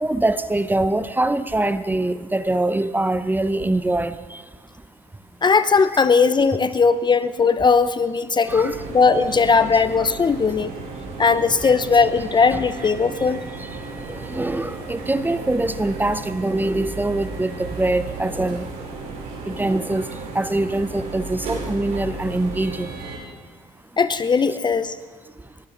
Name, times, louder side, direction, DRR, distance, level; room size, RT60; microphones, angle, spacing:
voice 1, 0.0-4.4 5.9-6.0 8.5-8.8 11.6-11.8 12.5-12.6 13.1-13.2 14.1-18.7 19.5-20.0 20.3-22.9, right 2 dB, 10° right, 12 dB, 0.8 m, -23 dB
voice 2, 5.4-10.7 11.2-13.5 24.0-25.0, left 5 dB, 30° left, 13 dB, 0.7 m, -18 dB
sound 1, 8.5-23.2, right 3 dB, 70° right, 5.0 m, -34 dB
21.5 x 14.5 x 3.9 m, 1.5 s
supercardioid pair, 70°, 16 cm